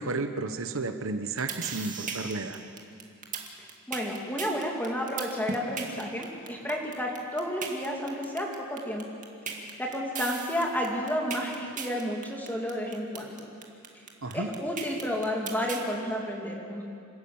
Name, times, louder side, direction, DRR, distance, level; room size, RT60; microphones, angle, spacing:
voice 1, 0.0-2.6 14.2-14.5, right 3 dB, 65° right, 8 dB, 1.0 m, -32 dB
sound 1, 1.2-15.9, right 5 dB, 35° right, 2.2 m, -37 dB
voice 2, 3.9-9.1 9.8-13.4 14.3-16.9, equal, 10° left, -1 dB, 2.9 m, -31 dB
27.5 x 13.0 x 8.7 m, 2.4 s
head